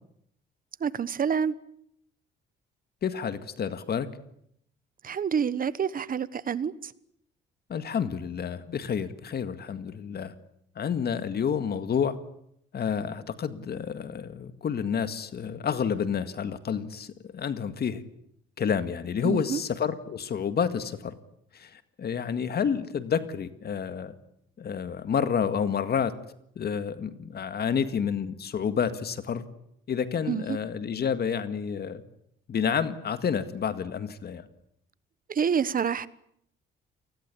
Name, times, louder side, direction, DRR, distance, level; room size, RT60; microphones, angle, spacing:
voice 1, 0.8-1.5 5.0-6.9 19.2-19.6 30.3-30.6 35.3-36.1, right 7 dB, 45° right, 17 dB, 1.2 m, -27 dB
voice 2, 3.0-4.1 7.7-10.3 10.8-12.2 12.7-18.0 18.6-21.1 21.6-21.7 22.0-24.1 24.6-26.1 26.6-29.5 29.9-32.0 32.5-34.4, left 7 dB, 55° left, 11 dB, 1.9 m, -29 dB
28.5 x 20.5 x 8.5 m, 0.73 s
cardioid pair, 90°, 20 cm